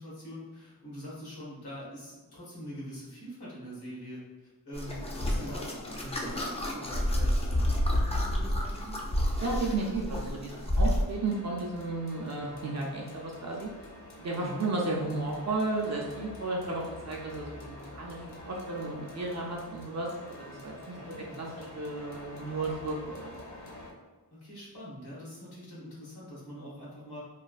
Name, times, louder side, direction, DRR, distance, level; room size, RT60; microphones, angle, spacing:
voice 1, 0.0-4.2 4.6-9.1 14.4-14.7 20.9-21.8 24.3-27.2, equal, 80° left, -6 dB, 1.2 m, -44 dB
sound 1, 4.7-11.0, left 1 dB, 20° left, 0.3 m, -29 dB
voice 2, 9.4-13.7 14.2-20.1 20.4-21.0 21.4-23.3, right 3 dB, 45° right, -2 dB, 0.4 m, -33 dB
sound 2, 11.1-23.9, left 1 dB, 50° left, 0.7 m, -47 dB
3.1 x 2.3 x 2.4 m, 1.3 s
wide cardioid pair, 120°, 38 cm